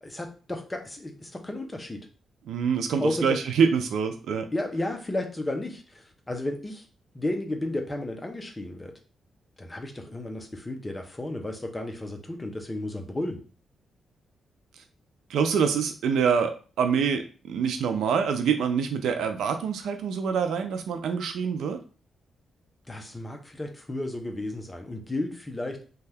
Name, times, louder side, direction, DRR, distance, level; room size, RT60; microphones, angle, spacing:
voice 1, 0.0-2.1 3.0-3.4 4.5-6.9 7.1-8.9 9.6-13.4 22.9-25.8, left 1 dB, 15° left, 3 dB, 0.6 m, -33 dB
voice 2, 2.5-4.5 15.3-21.8, right 6 dB, 85° right, 6 dB, 0.3 m, -25 dB
2.7 x 2.3 x 3.3 m, 0.37 s
cardioid pair, 120°, 0 cm